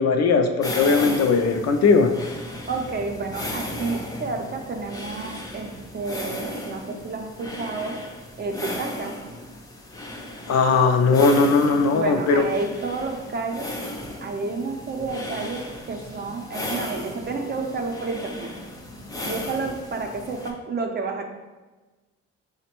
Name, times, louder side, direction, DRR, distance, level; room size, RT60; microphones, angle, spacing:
voice 1, 0.0-2.1 10.5-12.4, left 4 dB, 60° left, 6 dB, 0.5 m, -19 dB
sound 1, 0.6-20.5, left 1 dB, 10° left, 0.5 m, -35 dB
voice 2, 2.7-7.9 8.4-9.1 11.9-13.7 14.2-18.5 19.2-21.2, right 3 dB, 35° right, 3 dB, 0.5 m, -30 dB
5.0 x 2.1 x 2.9 m, 1.2 s
cardioid pair, 90°, 30 cm